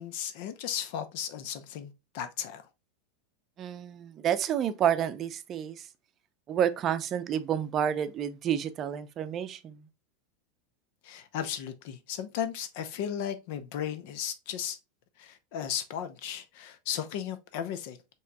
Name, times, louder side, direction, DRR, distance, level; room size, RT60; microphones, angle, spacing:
voice 1, 0.0-2.6 11.0-14.8 15.2-18.0, left 9 dB, 60° left, 0.6 m, -35 dB
voice 2, 3.6-5.9 6.5-9.9, right 9 dB, 35° right, 0.5 m, -29 dB
5.6 x 3.0 x 2.3 m
supercardioid pair, 125°, 0 cm